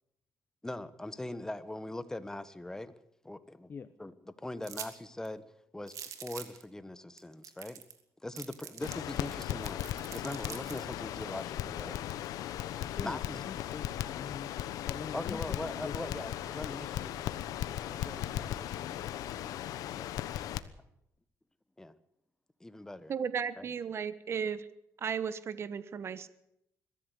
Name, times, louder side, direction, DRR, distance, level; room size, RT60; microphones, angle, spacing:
voice 1, 0.6-2.9 3.2-3.7 4.0-5.4 5.7-7.8 8.2-9.8 10.1-12.0 13.0-13.4 15.1-20.1 21.8-21.9 22.6-23.1 23.6-23.7, left 1 dB, 10° left, 13 dB, 1.4 m, -42 dB
sound 1, 4.6-4.9 5.2-5.3 5.9-6.6 7.2-7.3 7.4-8.0 8.4-10.8, right 9 dB, 65° right, 2.9 m, -44 dB
Crackle, 8.8-20.6, left 12 dB, 85° left, 1.1 m, -37 dB
voice 2, 12.8-13.2 13.5-15.9, left 6 dB, 35° left, 13 dB, 0.8 m, -44 dB
voice 3, 23.1-24.7 25.0-26.3, right 7 dB, 45° right, 15 dB, 1.3 m, -35 dB
22.5 x 14.5 x 8.3 m, 0.80 s
cardioid pair, 110°, 6 cm